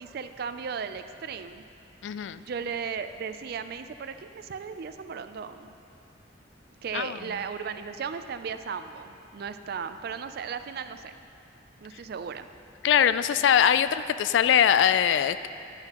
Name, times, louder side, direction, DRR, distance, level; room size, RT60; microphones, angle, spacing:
voice 1, 0.0-1.7 2.4-5.7 6.8-11.2 11.8-12.5, right 6 dB, 60° right, 10 dB, 0.4 m, -36 dB
voice 2, 2.0-2.4 6.9-7.2 12.8-15.5, left 9 dB, 85° left, 13 dB, 0.3 m, -22 dB
11.5 x 9.6 x 2.9 m, 2.6 s
head